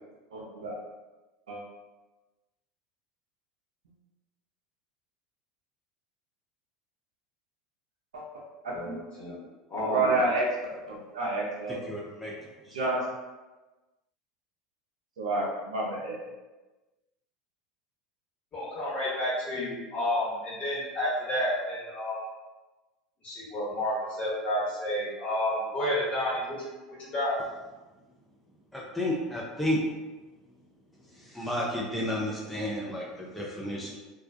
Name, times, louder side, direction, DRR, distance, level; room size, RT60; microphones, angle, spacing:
voice 1, 0.3-0.8 1.5-1.6 8.1-8.2 8.6-9.0 9.9-10.5 10.9-11.8 12.7-13.0 15.2-16.2, right 2 dB, 85° right, -3 dB, 0.5 m, -29 dB
voice 2, 8.7-9.4 9.7-10.2 18.5-22.2 23.2-26.7 27.0-27.3, left 1 dB, 35° left, -6 dB, 1.1 m, -30 dB
voice 3, 11.9-12.3 12.7-12.8 28.7-29.8 31.3-34.0, left 1 dB, ahead, -5 dB, 0.4 m, -32 dB
2.3 x 2.2 x 2.5 m, 1.2 s
hypercardioid pair, 85°, 4 cm